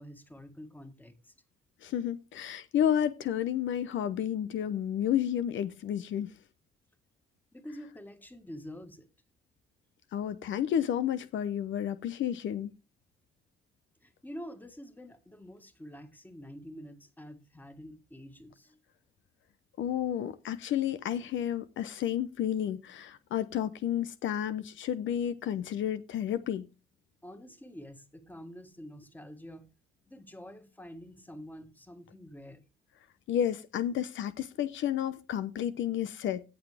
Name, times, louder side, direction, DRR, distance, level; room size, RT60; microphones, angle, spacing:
voice 1, 0.0-1.3 7.5-9.1 14.0-18.8 27.2-29.7 30.1-32.6, equal, 10° left, 1.8 m, -47 dB
voice 2, 1.8-6.3 10.1-12.7 19.8-26.6 33.3-36.4, left 10 dB, 75° left, 0.7 m, -31 dB
17.5 x 6.2 x 3.4 m
cardioid pair, 90°, 20 cm